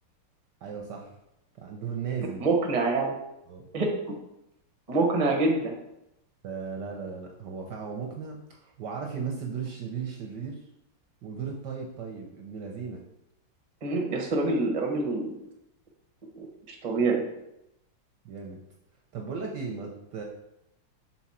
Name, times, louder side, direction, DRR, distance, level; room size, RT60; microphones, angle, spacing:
voice 1, 0.6-1.2 1.6-2.4 3.5-3.7 6.4-10.6 11.2-13.0 18.2-18.6 19.1-20.2, right 6 dB, 70° right, 1 dB, 1.1 m, -36 dB
voice 2, 2.4-3.1 3.7-3.9 4.9-5.7 13.8-15.4 16.4-17.2, right 3 dB, 35° right, 1 dB, 0.6 m, -26 dB
6.0 x 4.1 x 4.2 m, 0.85 s
omnidirectional pair, 2.4 m